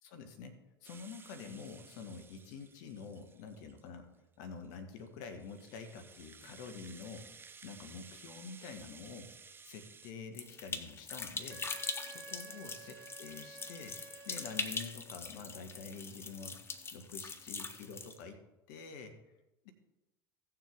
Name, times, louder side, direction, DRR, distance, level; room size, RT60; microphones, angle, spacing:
voice 1, 0.0-4.1 4.4-7.3 7.6-9.3 9.6-11.7 12.1-14.0 14.2-16.6 16.9-18.4 18.7-19.2 19.6-19.7, left 5 dB, 55° left, 7 dB, 1.3 m, -47 dB
Rattle (instrument), 0.8-3.9 4.4-10.1, right 5 dB, 15° right, 0.6 m, -56 dB
sound 1, 10.3-18.2, left 4 dB, 20° left, 1.0 m, -42 dB
Wind instrument woodwind instrument, 11.5-15.1, right 6 dB, 65° right, 0.9 m, -52 dB
16.5 x 6.9 x 3.5 m, 0.98 s
figure-of-eight pair, 75°, 12 cm